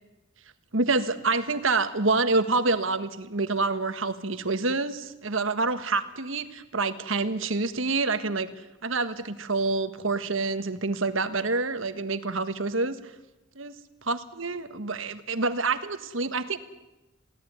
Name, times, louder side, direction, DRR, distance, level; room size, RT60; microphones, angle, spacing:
voice 1, 0.7-8.5 8.8-13.0 13.5-13.7 14.1-16.6, right 3 dB, 70° right, 10 dB, 1.5 m, -27 dB
22.5 x 17.0 x 9.5 m, 1.0 s
head